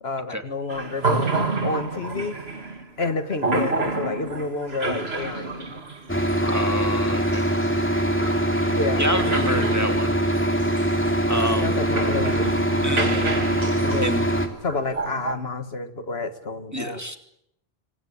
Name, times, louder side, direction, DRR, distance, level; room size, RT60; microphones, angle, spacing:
voice 1, 0.0-2.4 3.0-5.7 6.4-6.7 8.7-9.8 11.5-12.5 12.9-13.1 13.8-14.3 14.6-17.0, left 3 dB, 70° left, 10 dB, 1.9 m, -30 dB
sound 1, 0.7-15.4, right 3 dB, 75° right, 2.8 m, -30 dB
sound 2, 6.1-14.5, right 1 dB, 10° left, 3.1 m, -23 dB
voice 2, 6.5-7.5 9.0-10.1 11.3-11.8 12.8-13.3 14.0-14.2 16.7-17.2, equal, 15° right, 6 dB, 2.6 m, -27 dB
27.5 x 24.0 x 8.5 m, 0.79 s
omnidirectional pair, 1.1 m